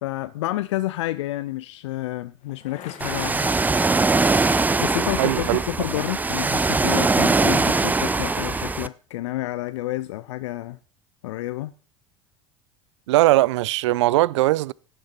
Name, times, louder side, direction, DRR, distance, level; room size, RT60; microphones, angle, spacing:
voice 1, 0.0-3.5 4.6-10.8 11.2-11.7, left 16 dB, 70° left, 0.5 m, -29 dB
Bicycle, 2.4-5.3, left 8 dB, 50° left, 2.3 m, -43 dB
Ocean, 3.0-8.9, right 3 dB, 10° right, 0.5 m, -21 dB
voice 2, 5.2-5.6 13.1-14.7, right 17 dB, 70° right, 0.4 m, -19 dB
16.5 x 7.4 x 4.4 m
figure-of-eight pair, 70°, 16 cm